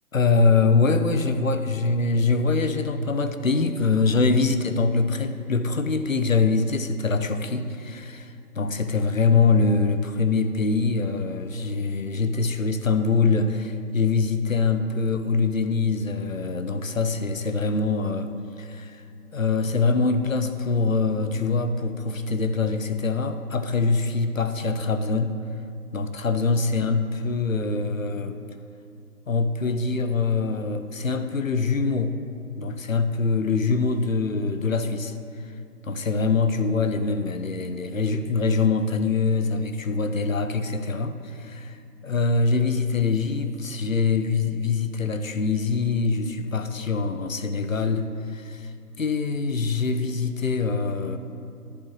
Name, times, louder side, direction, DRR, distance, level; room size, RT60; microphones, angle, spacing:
voice 1, 0.1-19.0 19.3-25.3 25.9-28.4 29.3-32.2 32.6-35.2 35.8-51.2, left 4 dB, 60° left, 9 dB, 0.6 m, -24 dB
11.0 x 7.5 x 3.1 m, 2.4 s
figure-of-eight pair, 170°, 47 cm